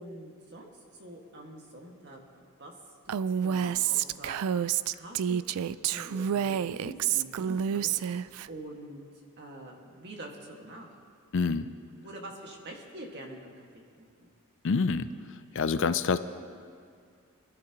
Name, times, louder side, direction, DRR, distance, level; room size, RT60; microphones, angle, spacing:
voice 1, 0.0-2.2 2.6-2.7 3.1-4.4 4.9-7.9 8.5-10.9 12.0-14.3, right 1 dB, 50° right, 0 dB, 1.9 m, -45 dB
Female speech woman speaking, 3.1-8.5, right 9 dB, 80° right, 0.3 m, -29 dB
voice 2, 11.3-11.7 14.6-15.1 15.5-16.2, left 5 dB, 60° left, 12 dB, 0.5 m, -26 dB
24.5 x 12.5 x 3.0 m, 2.2 s
head